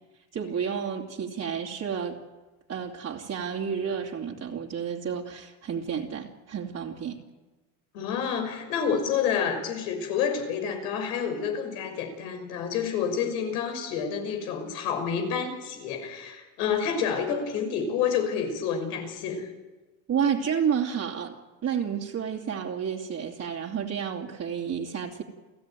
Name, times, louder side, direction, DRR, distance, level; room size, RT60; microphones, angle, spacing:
voice 1, 0.3-2.2 2.7-7.2 20.1-21.4 21.6-25.2, right 7 dB, 35° right, -1 dB, 2.8 m, -30 dB
voice 2, 7.9-19.5, left 7 dB, 90° left, 5 dB, 6.2 m, -29 dB
30.0 x 15.5 x 9.3 m, 1.2 s
supercardioid pair, 115°, 44 cm